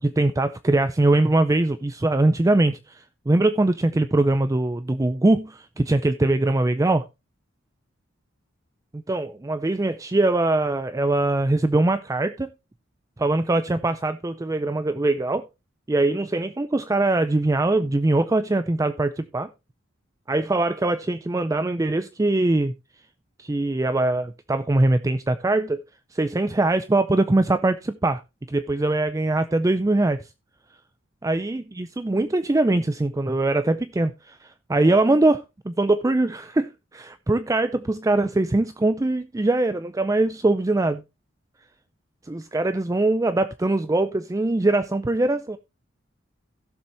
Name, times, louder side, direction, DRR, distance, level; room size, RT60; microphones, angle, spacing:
voice 1, 0.0-7.1 8.9-12.5 13.2-15.5 15.9-19.5 20.3-22.7 23.4-25.8 26.1-28.2 28.5-30.3 31.2-41.0 42.2-45.6, right 2 dB, 15° right, 0.4 m, -22 dB
16.0 x 7.0 x 2.9 m
head